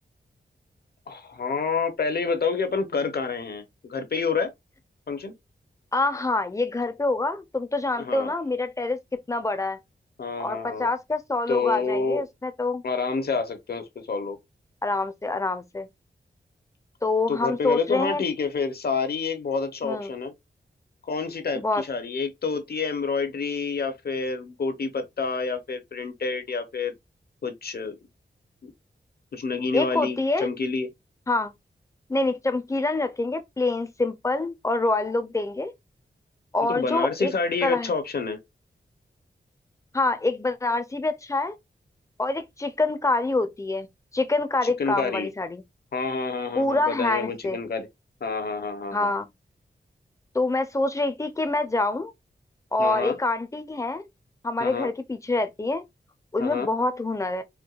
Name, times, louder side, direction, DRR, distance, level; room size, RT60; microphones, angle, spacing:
voice 1, 1.1-4.5 5.1-5.3 8.0-8.3 10.2-10.9 11.5-12.2 12.8-14.4 17.3-20.3 21.1-26.9 27.4-28.0 28.6-28.7 29.3-30.9 36.7-38.4 44.8-45.3 45.9-47.9 48.2-49.1 52.8-53.2 54.6-54.9 56.4-56.7, left 4 dB, 65° left, 0.8 m, -28 dB
voice 2, 5.9-9.8 10.4-12.8 14.8-15.9 17.0-18.2 19.8-20.1 21.5-21.8 29.7-30.5 31.3-31.5 32.1-35.7 36.5-37.3 37.6-37.9 39.9-41.6 42.2-43.9 44.1-45.6 46.6-47.6 48.9-49.3 50.3-52.1 52.7-54.1 54.4-55.8 56.3-57.4, left 2 dB, 15° left, 0.5 m, -26 dB
4.5 x 2.2 x 2.3 m
wide cardioid pair, 105°, 18 cm